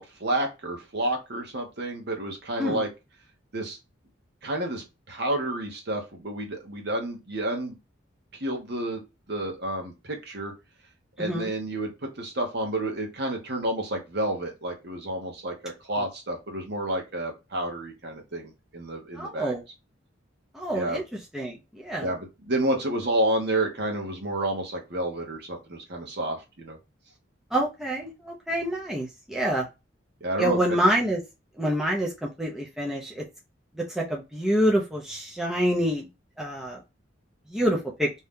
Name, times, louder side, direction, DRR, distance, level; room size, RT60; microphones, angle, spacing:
voice 1, 0.0-2.9 3.5-3.8 4.4-7.8 8.3-9.0 9.3-10.5 11.2-19.5 20.7-21.0 22.0-26.8 30.2-30.8, right 1 dB, 55° right, 2 dB, 0.9 m, -30 dB
voice 2, 11.2-11.5 19.2-19.6 20.5-21.0 21.3-22.1 27.5-29.7 30.4-31.2 31.6-33.2 33.8-36.1 36.4-36.8 37.5-38.1, equal, ahead, -3 dB, 0.5 m, -27 dB
2.7 x 2.3 x 3.5 m, 0.25 s
head